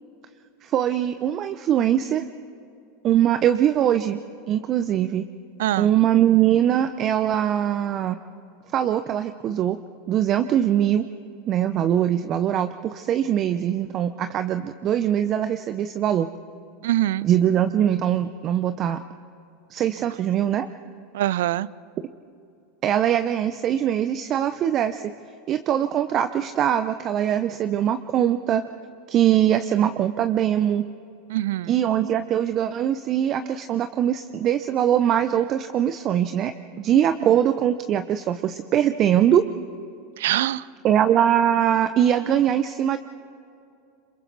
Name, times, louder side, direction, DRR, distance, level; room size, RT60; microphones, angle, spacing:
voice 1, 0.6-2.3 3.0-4.2 4.5-5.2 5.8-8.2 8.7-9.8 10.1-11.1 11.5-16.3 17.2-19.0 19.7-20.7 22.8-25.0 25.5-28.6 29.1-30.8 31.7-36.5 36.8-39.5 40.8-43.0, right 10 dB, 40° right, 10 dB, 0.7 m, -22 dB
voice 2, 5.6-5.9 16.8-17.3 21.1-21.7 31.3-31.9 40.2-40.7, right 14 dB, 75° right, 20 dB, 0.5 m, -24 dB
28.0 x 26.5 x 4.1 m, 2.6 s
hypercardioid pair, 95°, 0 cm